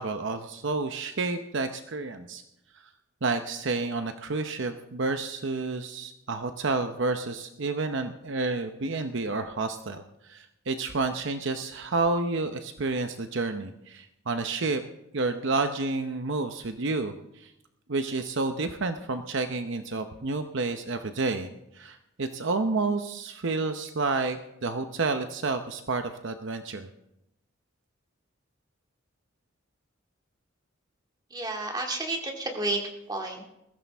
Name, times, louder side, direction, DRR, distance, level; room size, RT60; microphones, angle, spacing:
voice 1, 0.0-2.4 3.2-14.8 15.1-17.5 17.9-26.9, right 3 dB, 65° right, 7 dB, 0.8 m, -30 dB
voice 2, 31.3-32.8 33.1-33.4, right 2 dB, 20° right, 1 dB, 2.2 m, -31 dB
20.5 x 15.5 x 3.5 m, 0.87 s
head